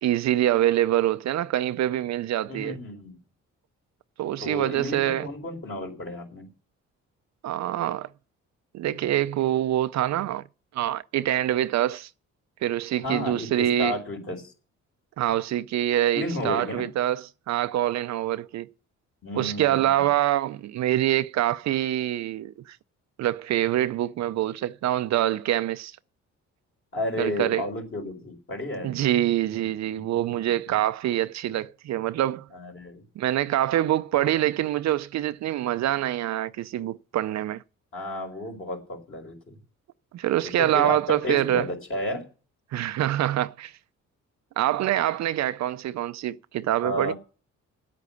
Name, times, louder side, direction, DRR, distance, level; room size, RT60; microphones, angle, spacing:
voice 1, 0.0-2.8 4.2-5.3 7.4-8.1 8.7-10.4 10.7-12.1 12.6-13.9 15.2-18.7 19.3-22.8 23.2-26.0 27.2-27.6 28.8-32.5 33.2-37.6 40.1-41.7 42.7-43.7 44.6-47.1, right 13 dB, 65° right, 0.5 m, -25 dB
voice 2, 2.5-3.2 4.4-6.5 13.0-14.5 16.1-16.8 19.2-20.1 26.9-29.0 30.0-30.8 32.5-33.0 37.9-39.6 40.4-42.2 46.8-47.1, left 1 dB, 45° left, 4.4 m, -32 dB
9.0 x 8.4 x 8.3 m
cardioid pair, 90°, 30 cm